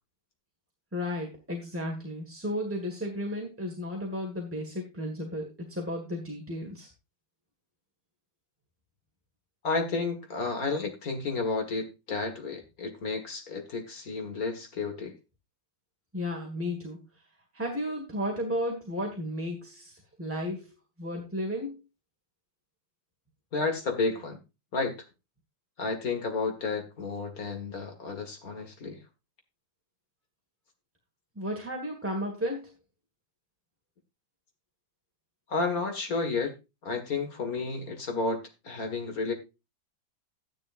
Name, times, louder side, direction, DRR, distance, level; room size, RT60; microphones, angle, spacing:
voice 1, 0.9-6.9 16.1-17.0 17.5-20.7 21.0-21.8 31.3-32.7, equal, 5° right, 0 dB, 1.5 m, -33 dB
voice 2, 9.6-15.1 23.5-24.4 24.7-24.9 25.8-29.0 35.5-36.5 36.8-39.3, left 3 dB, 50° left, 5 dB, 2.1 m, -31 dB
13.0 x 10.0 x 2.5 m, 0.26 s
omnidirectional pair, 2.1 m